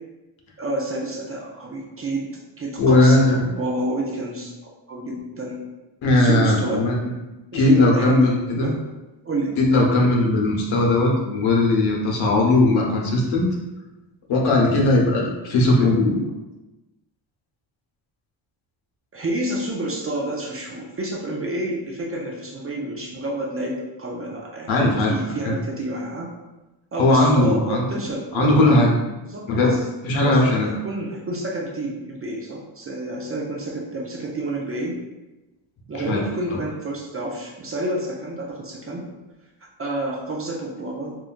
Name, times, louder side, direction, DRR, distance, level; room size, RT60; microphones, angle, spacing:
voice 1, 0.6-2.3 2.6-5.6 6.1-6.9 7.5-8.3 8.6-8.8 9.2-9.6 19.1-26.3 26.9-28.5 29.2-29.8 30.2-35.0 35.9-39.1 39.8-41.2, right 1 dB, 30° right, -2 dB, 0.4 m, -29 dB
voice 2, 2.8-3.4 6.0-7.2 7.5-8.7 9.6-13.5 14.3-16.2 24.7-25.2 25.5-25.6 27.0-27.9 28.3-28.9 29.5-29.7 30.1-30.7 35.9-36.6, left 2 dB, 70° left, -2 dB, 0.8 m, -18 dB
3.1 x 2.2 x 2.4 m, 1.1 s
cardioid pair, 100°, 49 cm